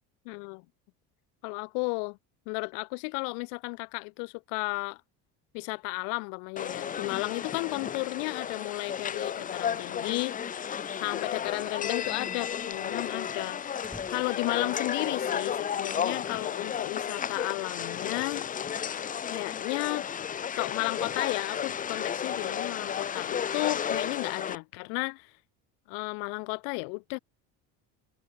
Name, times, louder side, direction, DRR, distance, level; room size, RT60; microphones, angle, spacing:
voice 1, 0.3-0.6 1.4-2.2 2.5-5.0 5.5-10.4 11.0-18.5 19.3-20.1 20.6-25.3 25.9-27.2, left 40 dB or more, 80° left, 0.6 m, -33 dB
sound 1, 6.6-24.6, left 8 dB, 20° left, 0.9 m, -33 dB
sound 2, 10.9-11.1 11.5-11.6 11.8-11.9 12.3-15.4, equal, ahead, 1.8 m, -53 dB
cardioid pair, 165°, 40 cm